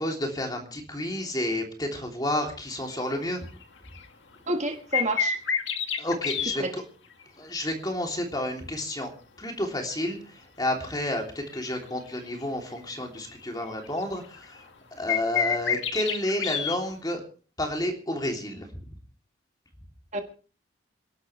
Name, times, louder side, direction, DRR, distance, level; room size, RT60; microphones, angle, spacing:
voice 1, 0.0-3.5 6.0-6.8 7.4-9.1 9.4-10.2 10.6-14.6 14.9-17.2 17.6-18.7, left 1 dB, 20° left, 2 dB, 3.2 m, -30 dB
sound 1, 2.9-3.0 3.5-3.6 3.9-4.1 4.7-6.6 10.6-10.7 11.5-12.4 12.8-12.9 13.3-13.4 13.6-14.6 15.1-16.8, left 7 dB, 75° left, 2.0 m, -28 dB
voice 2, 4.5-5.4 6.6-6.7 20.1-20.2, right 2 dB, 35° right, 4 dB, 1.7 m, -29 dB
28.0 x 11.5 x 3.3 m, 0.38 s
head